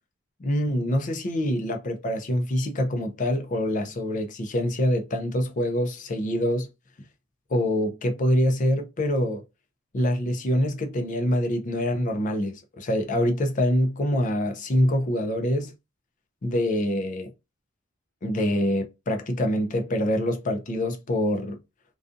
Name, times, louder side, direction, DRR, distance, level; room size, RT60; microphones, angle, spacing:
voice 1, 0.4-6.7 7.5-9.4 9.9-15.7 16.4-17.3 18.2-21.6, left 1 dB, 35° left, 0.4 m, -25 dB
2.5 x 2.3 x 2.4 m
head